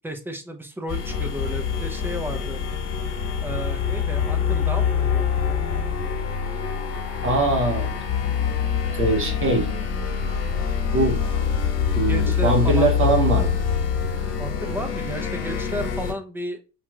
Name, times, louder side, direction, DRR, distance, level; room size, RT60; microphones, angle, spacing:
voice 1, 0.0-2.6 3.4-5.3 12.0-12.9 14.4-16.6, equal, 5° right, 6 dB, 0.7 m, -33 dB
sound 1, 0.9-16.1, left 7 dB, 50° left, 1.6 m, -25 dB
voice 2, 7.2-7.9 9.0-9.7 10.9-11.2 11.9-13.6, right 2 dB, 40° right, 3 dB, 0.9 m, -22 dB
5.7 x 2.9 x 2.4 m, 0.32 s
cardioid pair, 105°, 34 cm